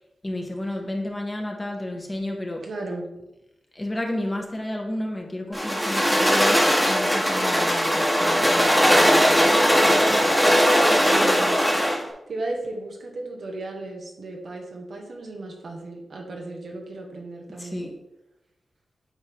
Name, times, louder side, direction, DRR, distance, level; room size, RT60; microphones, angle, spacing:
voice 1, 0.2-2.6 3.7-10.6 17.5-17.9, left 1 dB, 25° left, 1 dB, 1.5 m, -32 dB
voice 2, 2.6-3.1 10.9-11.6 12.3-17.9, right 2 dB, 70° right, 0 dB, 1.5 m, -35 dB
sound 1, 5.5-12.0, equal, 5° right, 1.6 m, -19 dB
8.9 x 4.2 x 3.6 m, 0.90 s
cardioid pair, 60°, 0 cm